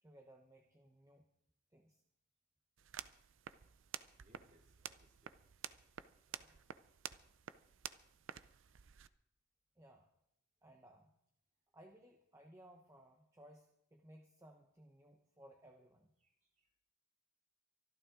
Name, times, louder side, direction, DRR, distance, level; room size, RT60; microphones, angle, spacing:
voice 1, 0.0-1.3 1.7-2.0 9.8-10.1 10.6-11.1 11.7-16.1, right 1 dB, 15° right, 3 dB, 0.8 m, -61 dB
sound 1, 2.8-9.1, right 9 dB, 60° right, 0.5 m, -51 dB
voice 2, 4.2-5.4 6.3-6.7 16.2-16.8, right 1 dB, 35° right, -1 dB, 3.1 m, -72 dB
24.0 x 12.5 x 3.8 m, 0.78 s
head